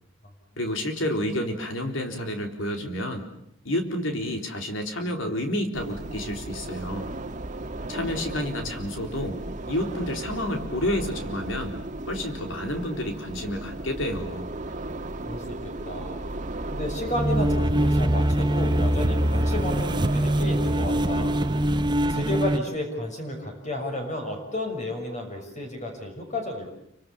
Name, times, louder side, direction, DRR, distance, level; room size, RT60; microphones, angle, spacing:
voice 1, 0.6-3.3 3.6-7.1 7.9-9.4 9.7-11.8 12.1-14.5, left 1 dB, 85° left, 4 dB, 4.1 m, -30 dB
sound 1, 5.7-21.7, right 2 dB, 40° right, 1.5 m, -35 dB
voice 2, 15.3-16.2 16.7-21.4 22.1-26.7, left 1 dB, 40° left, 3 dB, 6.4 m, -32 dB
sound 2, 17.0-22.6, right 1 dB, 25° right, 0.9 m, -23 dB
29.0 x 25.5 x 7.2 m, 0.77 s
head